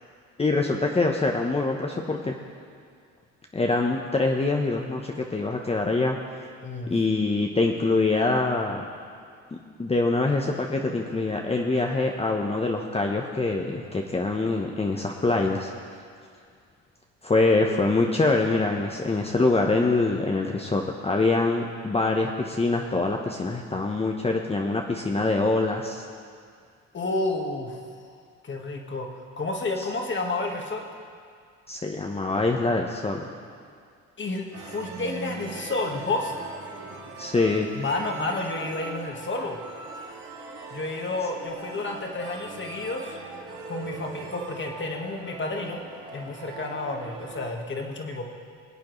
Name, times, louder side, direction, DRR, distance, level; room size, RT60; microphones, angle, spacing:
voice 1, 0.4-2.4 3.5-6.5 6.9-8.9 9.5-15.7 17.2-26.1 31.7-33.2 37.2-37.7, left 3 dB, 20° left, 1 dB, 0.9 m, -24 dB
voice 2, 6.6-6.9 26.9-27.8 28.4-29.1 29.4-30.9 34.2-36.5 37.7-39.6 40.7-43.2 43.7-45.8 46.1-48.3, left 2 dB, 35° left, 1 dB, 1.7 m, -30 dB
sound 1, 34.5-47.5, right 3 dB, 65° right, 2.1 m, -40 dB
22.0 x 8.3 x 3.2 m, 2.2 s
supercardioid pair, 70°, 33 cm